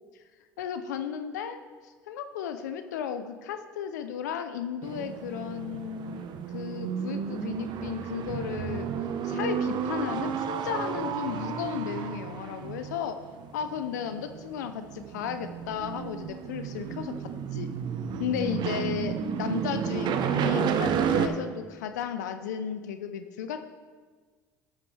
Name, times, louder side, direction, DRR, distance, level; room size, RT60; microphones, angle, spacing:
voice 1, 0.6-6.2 6.5-8.9 9.2-13.2 13.5-17.1 17.5-17.7 18.2-23.6, left 8 dB, 85° left, 9 dB, 0.6 m, -34 dB
sound 1, 4.8-21.3, right 7 dB, 55° right, 0.9 m, -32 dB
13.0 x 8.3 x 3.3 m, 1.5 s
hypercardioid pair, 70°, 9 cm